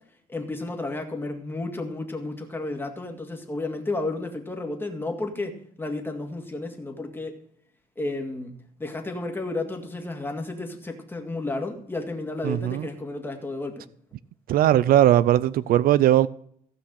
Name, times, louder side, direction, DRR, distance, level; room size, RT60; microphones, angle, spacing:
voice 1, 0.3-7.4 8.0-13.9, left 2 dB, 10° left, 2.0 m, -32 dB
voice 2, 12.4-12.8 14.5-16.3, right 12 dB, 60° right, 0.4 m, -19 dB
15.5 x 5.9 x 6.4 m
cardioid pair, 110°, 17 cm